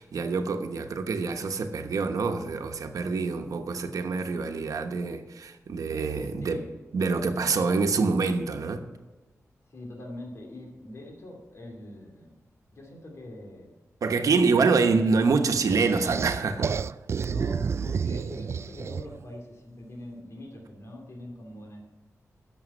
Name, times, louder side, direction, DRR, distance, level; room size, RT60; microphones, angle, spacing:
voice 1, 0.0-6.6 6.9-8.8 14.0-16.7, right 4 dB, 90° right, 5 dB, 1.1 m, -26 dB
voice 2, 6.4-6.8 9.7-12.3 12.7-13.7 14.7-14.9 17.2-21.9, left 1 dB, 55° left, 1 dB, 2.7 m, -43 dB
sound 1, 15.7-19.3, right 6 dB, 50° right, 0.3 m, -30 dB
11.5 x 7.2 x 9.8 m, 1.2 s
wide cardioid pair, 150°, 6 cm